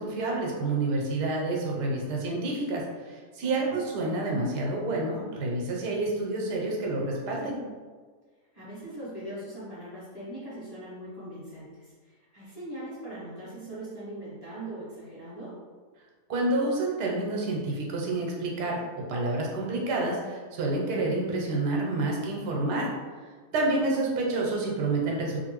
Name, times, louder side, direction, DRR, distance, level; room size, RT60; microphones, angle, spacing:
voice 1, 0.0-2.8 3.4-7.6 16.3-18.8 19.1-22.9 23.5-25.4, right 2 dB, 90° right, -1 dB, 1.3 m, -28 dB
voice 2, 3.4-3.9 8.5-15.6 23.6-23.8, right 1 dB, 30° left, -10 dB, 0.9 m, -41 dB
2.9 x 2.6 x 2.9 m, 1.5 s
omnidirectional pair, 1.7 m